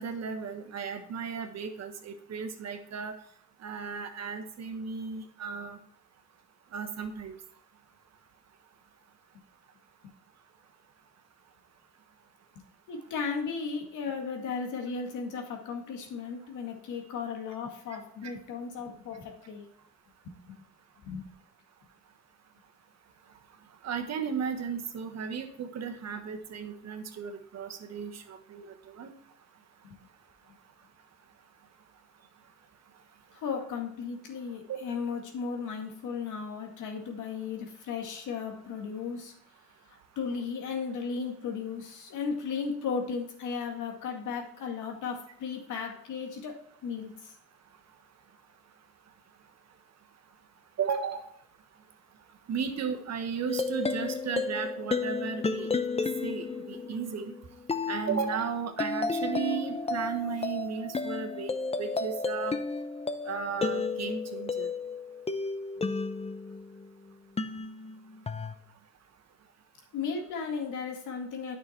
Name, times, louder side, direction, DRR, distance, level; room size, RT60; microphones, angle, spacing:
voice 1, 0.0-3.1 3.6-5.8 6.7-7.3 17.9-18.0 23.8-29.1 34.7-34.8 50.8-51.2 52.5-55.7 56.2-57.3 57.9-61.5 61.8-62.5 63.3-64.7, right 6 dB, 60° right, 6 dB, 1.4 m, -35 dB
voice 2, 12.9-19.6 20.2-20.6 21.0-21.3 29.8-30.0 33.3-39.3 39.9-46.5 46.8-47.3 69.9-71.6, left 5 dB, 85° left, 2 dB, 2.2 m, -35 dB
sound 1, 53.5-66.9 67.4-68.5, left 4 dB, 20° left, 0.7 m, -33 dB
9.7 x 6.2 x 4.5 m, 0.65 s
cardioid pair, 90°, 30 cm